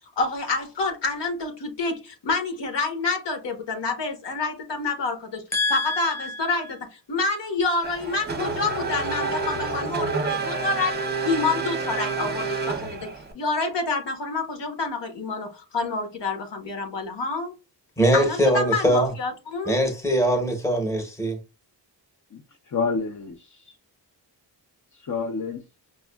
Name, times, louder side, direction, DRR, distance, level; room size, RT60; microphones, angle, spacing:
voice 1, 0.2-5.4 5.7-11.0 11.2-13.1 13.3-17.5 18.1-19.8, left 3 dB, 70° left, 1.2 m, -28 dB
voice 2, 5.5-6.7 18.0-19.1 19.7-21.4, equal, 5° left, 0.9 m, -23 dB
Race car auto racing / Accelerating revving vroom, 7.8-13.3, right 3 dB, 25° right, 0.7 m, -28 dB
voice 3, 22.3-23.7 24.9-25.6, left 4 dB, 45° left, 0.6 m, -29 dB
5.3 x 2.3 x 2.2 m
wide cardioid pair, 140°, 43 cm